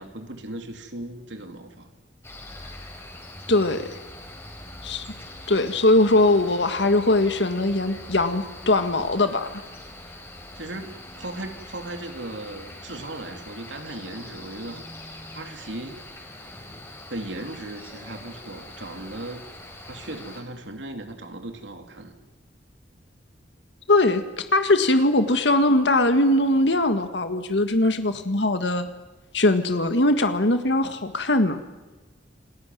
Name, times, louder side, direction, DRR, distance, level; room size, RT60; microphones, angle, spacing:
voice 1, 0.0-1.9 10.5-14.8 15.3-16.0 17.1-19.4 19.8-22.2, right 2 dB, 80° right, 5 dB, 3.0 m, -37 dB
Cricket, 2.2-20.4, left 1 dB, 15° left, 4.5 m, -43 dB
voice 2, 3.5-3.8 4.8-5.1 5.5-9.6 23.9-28.9 29.3-31.6, left 2 dB, 70° left, 8 dB, 1.8 m, -21 dB
29.0 x 19.5 x 9.3 m, 1.2 s
head